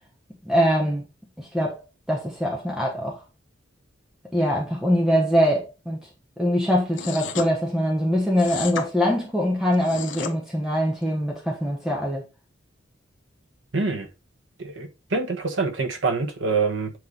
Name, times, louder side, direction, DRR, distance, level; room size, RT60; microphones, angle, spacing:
voice 1, 0.5-1.0 1.4-1.8 2.1-3.2 4.3-6.0 6.4-12.3, equal, 5° right, 1.3 m, -23 dB
sound 1, 6.9-7.5 8.4-8.9 9.7-10.3, left 5 dB, 75° left, 1.0 m, -32 dB
voice 2, 13.7-14.1 14.6-16.9, right 4 dB, 75° right, 1.3 m, -25 dB
7.9 x 3.6 x 4.0 m
head